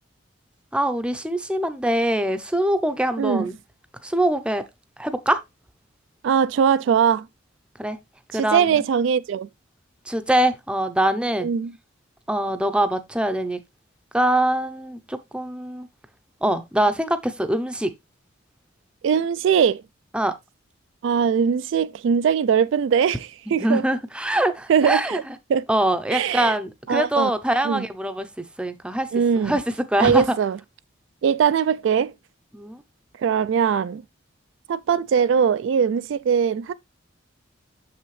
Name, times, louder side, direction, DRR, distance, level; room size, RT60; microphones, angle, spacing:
voice 1, 0.7-3.6 4.0-4.6 5.0-5.4 7.8-8.0 8.3-8.8 10.1-11.5 12.3-13.6 14.1-15.9 16.4-17.9 20.1-20.3 23.6-25.2 25.7-28.3 28.6-29.1 29.4-30.2 32.5-32.8, right 1 dB, 5° right, 0.6 m, -23 dB
voice 2, 3.2-3.5 6.2-7.3 8.3-9.5 11.4-11.7 19.0-19.8 21.0-23.8 24.7-25.2 25.5-25.6 26.1-26.5 26.9-27.3 27.6-27.9 29.1-29.5 30.0-30.6 31.2-32.1 33.2-34.0 34.7-36.7, right 7 dB, 65° right, 0.3 m, -21 dB
7.1 x 5.8 x 3.1 m
head